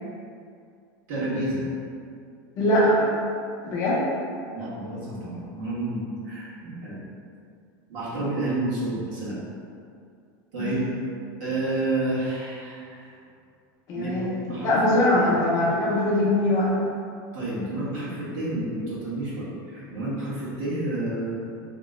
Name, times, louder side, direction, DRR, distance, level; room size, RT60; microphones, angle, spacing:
voice 1, 1.1-1.6 4.5-7.0 7.9-9.4 10.5-10.8 11.4-13.1 13.9-14.1 14.5-14.7 15.2-15.3 17.3-21.3, right 2 dB, 60° right, -9 dB, 1.3 m, -30 dB
voice 2, 2.6-3.0 3.6-4.0 10.6-10.8 13.9-14.3 14.6-16.7, left 1 dB, 30° left, -6 dB, 0.6 m, -22 dB
2.9 x 2.1 x 3.6 m, 2.3 s
supercardioid pair, 170°, 11 cm